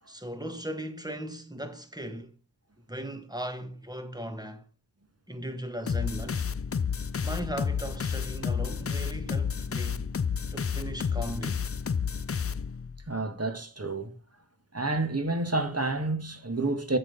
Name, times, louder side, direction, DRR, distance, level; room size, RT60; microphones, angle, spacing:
voice 1, 0.1-2.4 2.9-4.6 5.3-6.5 7.2-10.1 10.5-11.6, right 1 dB, 10° right, 1.7 m, -37 dB
sound 1, 5.9-13.0, left 6 dB, 35° left, 0.5 m, -31 dB
voice 2, 13.1-14.1 14.7-17.0, right 2 dB, 35° right, 1.7 m, -29 dB
8.4 x 7.8 x 5.4 m
wide cardioid pair, 55°, 44 cm